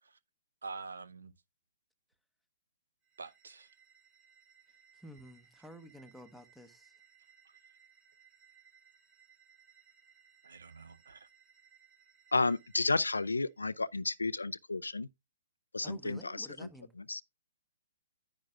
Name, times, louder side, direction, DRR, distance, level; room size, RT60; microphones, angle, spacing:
voice 1, 0.6-1.3 3.2-3.7 10.4-11.3, right 4 dB, 70° right, 0.7 m, -46 dB
sound 1, 3.0-13.5, right 7 dB, 30° right, 2.8 m, -64 dB
voice 2, 4.9-6.9 15.8-16.9, equal, ahead, 1.0 m, -51 dB
voice 3, 12.3-15.1 15.7-16.7 17.1-17.2, left 3 dB, 80° left, 0.4 m, -32 dB
10.5 x 8.8 x 2.4 m
figure-of-eight pair, 125°, 0 cm